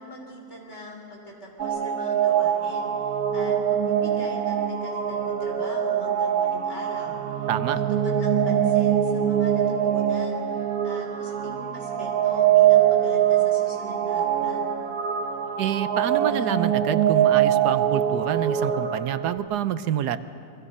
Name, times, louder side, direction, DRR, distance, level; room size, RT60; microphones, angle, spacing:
voice 1, 0.0-7.5 7.7-14.7, left 1 dB, 45° left, 0 dB, 4.1 m, -42 dB
sound 1, 1.6-19.4, right 9 dB, 70° right, 1.5 m, -23 dB
voice 2, 7.5-7.8 15.6-20.2, right 10 dB, 85° right, 13 dB, 1.3 m, -27 dB
27.5 x 22.5 x 5.6 m, 2.5 s
omnidirectional pair, 1.7 m